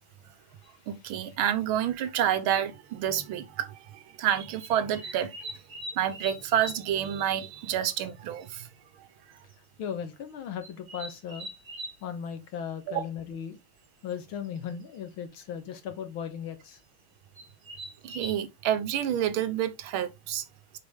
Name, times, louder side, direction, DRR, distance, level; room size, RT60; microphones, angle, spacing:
sound 1, 0.6-0.7 2.1-2.2 2.9-3.1 4.6-6.9 7.2-7.3 7.6-7.7 8.0-8.1 8.4-8.5 9.3-9.5 10.6-12.0 14.1-14.2 14.4-14.8 16.7-16.8 17.4-18.3, right 1 dB, 40° right, 3.2 m, -42 dB
voice 1, 0.9-3.7 4.2-5.3 6.0-8.6 12.9-13.0 18.0-20.4, right 10 dB, 90° right, 1.6 m, -28 dB
voice 2, 9.8-11.5 12.0-13.6 14.0-16.8, left 8 dB, 90° left, 2.1 m, -37 dB
6.7 x 5.2 x 3.5 m
omnidirectional pair, 2.2 m